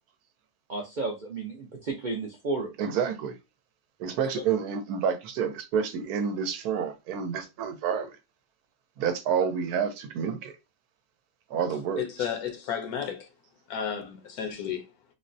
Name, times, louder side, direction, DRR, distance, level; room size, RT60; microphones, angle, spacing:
voice 1, 0.7-2.7, right 3 dB, 65° right, 0.4 m, -32 dB
voice 2, 2.8-3.3 4.0-8.1 9.0-10.6 11.5-12.0, right 7 dB, 85° right, 1.1 m, -29 dB
voice 3, 12.0-13.3 13.7-14.8, left 8 dB, 80° left, 1.1 m, -32 dB
3.8 x 2.1 x 2.6 m
omnidirectional pair, 1.6 m